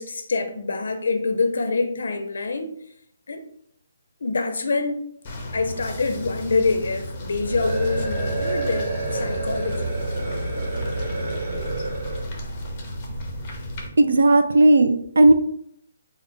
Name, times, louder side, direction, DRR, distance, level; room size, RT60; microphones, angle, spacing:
voice 1, 0.0-2.7 3.3-3.4 4.2-5.0 5.5-10.0, left 3 dB, 65° left, 0.5 m, -25 dB
sound 1, 5.2-13.9, equal, 20° left, 0.6 m, -34 dB
sound 2, 7.3-12.3, right 2 dB, 30° right, 0.9 m, -28 dB
voice 2, 14.0-15.3, right 2 dB, 90° right, 0.5 m, -15 dB
3.9 x 2.4 x 3.6 m
hypercardioid pair, 180°, 0 cm